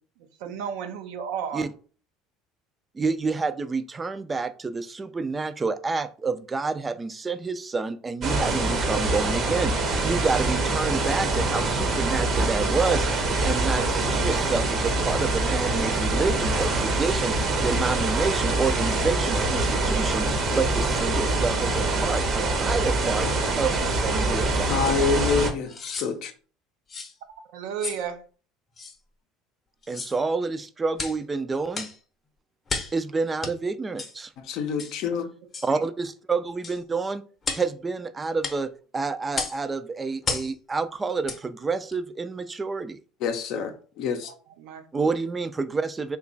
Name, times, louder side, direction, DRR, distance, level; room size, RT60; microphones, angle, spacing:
voice 1, 0.4-1.7 27.5-28.2 35.7-35.8 43.6-43.7 44.6-44.8, right 7 dB, 75° right, 0.5 m, -32 dB
voice 2, 2.9-17.3 17.6-23.3 23.6-24.9 29.9-31.9 32.9-34.3 35.6-37.2 37.5-43.0 44.9-46.2, right 4 dB, 20° right, 0.4 m, -28 dB
sound 1, 8.2-25.5, right 2 dB, 50° right, 0.8 m, -24 dB
voice 3, 24.7-26.3 34.4-35.3 43.2-44.3, left 6 dB, 65° left, 0.5 m, -27 dB
sound 2, 24.9-25.0 25.7-26.1 26.9-27.1 27.8-28.0 28.8-29.0 29.8-30.2 31.0-31.2 31.7-32.0 32.7-33.0 33.4-33.5 34.0-34.2 34.8-35.0 35.5-35.7 36.6-36.8 37.4-37.7 38.4-38.6 39.3-39.6 40.2-40.5 41.2-41.4 41.9-42.0, left 4 dB, 30° left, 0.7 m, -33 dB
2.9 x 2.3 x 3.8 m
supercardioid pair, 85°, 0 cm